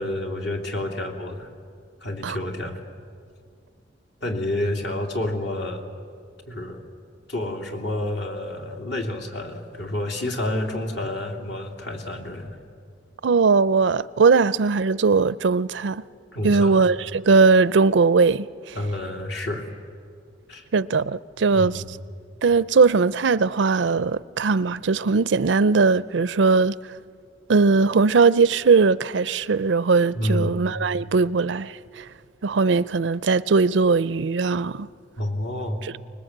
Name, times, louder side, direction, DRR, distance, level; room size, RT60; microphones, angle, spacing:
voice 1, 0.0-1.5 2.0-2.8 4.2-5.8 6.5-6.8 7.3-12.6 16.3-16.8 18.7-19.7 20.5-20.6 21.5-21.9 30.1-30.6 35.2-35.9, left 1 dB, 75° left, 2.9 m, -29 dB
voice 2, 13.2-16.0 16.4-18.8 20.7-21.8 22.4-26.7 27.5-32.1 32.4-34.9 35.8-35.9, right 4 dB, 85° right, 0.5 m, -19 dB
24.5 x 21.0 x 8.0 m
head